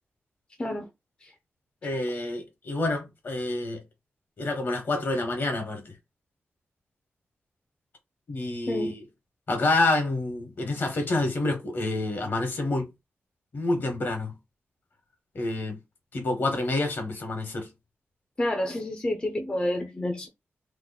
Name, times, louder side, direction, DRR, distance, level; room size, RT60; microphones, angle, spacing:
voice 1, 1.8-3.8 4.4-5.9 8.3-9.0 9.5-12.9 13.5-14.3 15.3-15.8 16.1-17.7, left 2 dB, 50° left, 1.2 m, -28 dB
voice 2, 18.4-20.3, left 1 dB, 20° left, 0.5 m, -29 dB
3.0 x 2.1 x 4.0 m
wide cardioid pair, 125°, 4 cm